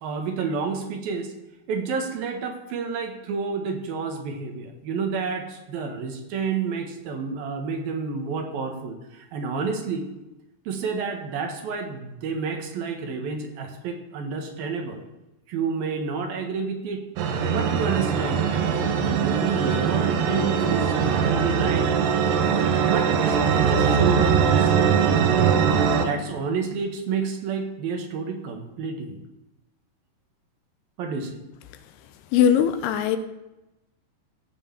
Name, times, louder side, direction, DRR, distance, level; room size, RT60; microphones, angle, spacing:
voice 1, 0.0-1.3 1.7-10.1 10.7-15.0 15.5-17.0 17.5-18.5 19.0-21.9 22.9-25.6 26.0-29.2 31.0-31.4, right 5 dB, 65° right, 4 dB, 3.1 m, -30 dB
sound 1, 17.2-26.1, right 7 dB, 90° right, 3.4 m, -21 dB
voice 2, 32.3-33.2, left 9 dB, 80° left, 11 dB, 2.7 m, -20 dB
15.5 x 6.4 x 7.3 m, 0.96 s
omnidirectional pair, 4.7 m